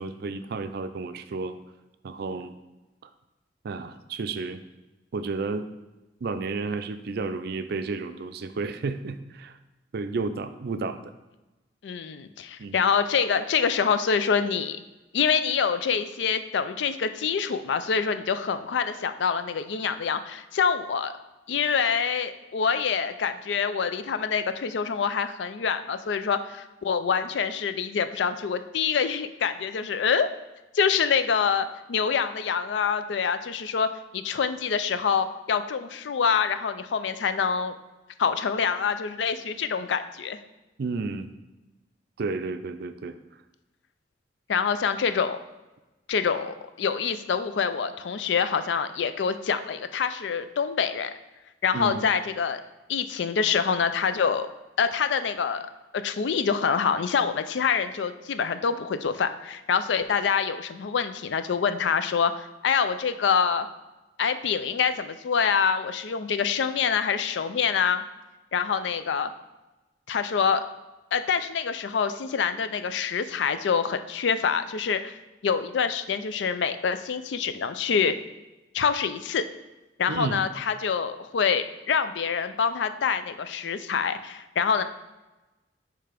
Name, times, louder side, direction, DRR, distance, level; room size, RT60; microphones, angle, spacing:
voice 1, 0.0-1.6 2.0-2.5 3.0-3.1 3.6-4.6 5.1-5.7 6.2-9.6 9.9-11.1 12.6-12.8 40.8-41.3 42.2-43.1 51.7-52.0 80.1-80.5, right 4 dB, 60° right, 10 dB, 0.4 m, -32 dB
voice 2, 11.8-14.8 15.1-21.1 21.5-30.3 30.7-33.9 34.1-37.7 38.2-40.4 44.5-45.4 46.1-51.1 51.6-52.6 52.9-54.5 54.8-55.7 55.9-63.7 64.2-68.0 68.5-69.3 70.1-70.6 71.1-75.2 75.4-78.2 78.7-79.4 80.0-84.8, left 6 dB, 80° left, 11 dB, 0.4 m, -26 dB
6.6 x 3.3 x 5.0 m, 1.1 s
head